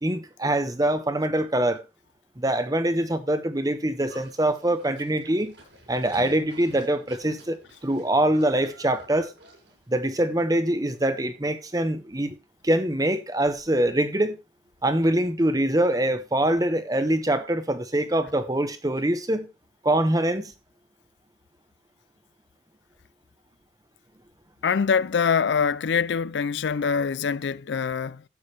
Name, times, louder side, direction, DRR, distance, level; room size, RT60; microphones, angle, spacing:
voice 1, 0.0-1.8 2.4-5.5 5.9-9.3 9.9-12.3 12.6-14.4 14.8-19.5 19.8-20.5, right 1 dB, 20° right, 0.9 m, -24 dB
Livestock farm animals working animals, 4.1-9.8, right 1 dB, 70° right, 6.8 m, -49 dB
voice 2, 24.6-28.2, left 6 dB, 75° left, 0.4 m, -24 dB
13.0 x 8.6 x 3.3 m
head